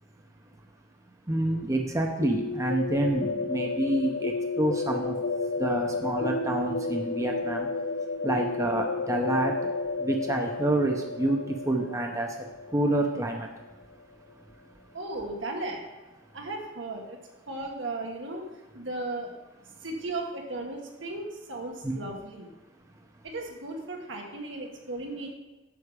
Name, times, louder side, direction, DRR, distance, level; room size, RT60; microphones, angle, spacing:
voice 1, 1.3-5.1 5.6-7.7 8.2-9.5 10.0-11.4 11.7-12.3 12.7-13.5 21.8-21.9, right 1 dB, 15° right, 2 dB, 0.7 m, -27 dB
sound 1, 2.2-13.9, left 3 dB, 65° left, 0.5 m, -32 dB
voice 2, 14.9-15.8 16.3-17.2 17.5-18.5 18.7-19.4 19.8-22.5 23.2-25.3, right 2 dB, 80° right, 1 dB, 1.6 m, -36 dB
9.4 x 6.3 x 4.9 m, 1.1 s
head